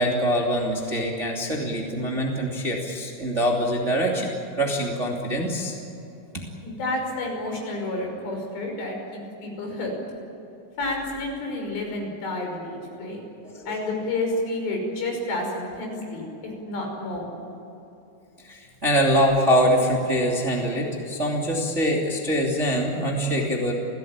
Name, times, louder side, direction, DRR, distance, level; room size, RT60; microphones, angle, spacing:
voice 1, 0.0-5.7 13.5-13.8 18.4-23.7, equal, 20° right, -1 dB, 2.4 m, -24 dB
voice 2, 6.6-9.9 10.8-13.2 13.7-17.3, left 2 dB, 70° left, 1 dB, 7.7 m, -30 dB
29.5 x 17.0 x 8.9 m, 3.0 s
omnidirectional pair, 5.1 m